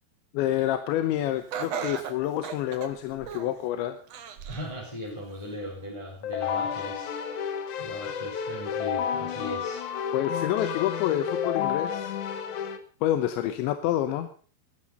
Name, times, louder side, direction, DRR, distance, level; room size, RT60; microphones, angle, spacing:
voice 1, 0.3-4.0 10.1-12.1 13.0-14.3, left 12 dB, 90° left, 9 dB, 3.3 m, -28 dB
Laughter, 1.5-3.6 4.1-4.7 5.2-5.3 6.3-6.4, right 8 dB, 90° right, 1.4 m, -36 dB
voice 2, 4.5-7.1 7.8-9.8, equal, 5° left, -3 dB, 4.0 m, -38 dB
Keyboard (musical), 6.2-12.8, left 8 dB, 65° left, 2.0 m, -31 dB
18.0 x 13.5 x 5.5 m, 0.43 s
omnidirectional pair, 5.1 m